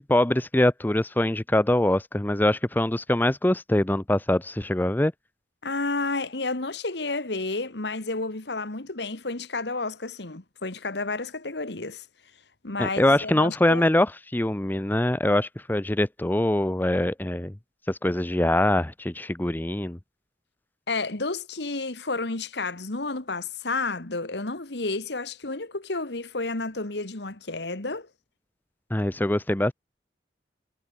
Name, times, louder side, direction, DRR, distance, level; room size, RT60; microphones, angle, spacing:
voice 1, 0.0-5.1 12.8-17.5 17.9-20.0 28.9-29.7, left 1 dB, 10° left, 0.6 m, -23 dB
voice 2, 5.6-12.1 12.6-13.8 20.9-28.1, left 3 dB, 70° left, 1.9 m, -31 dB
head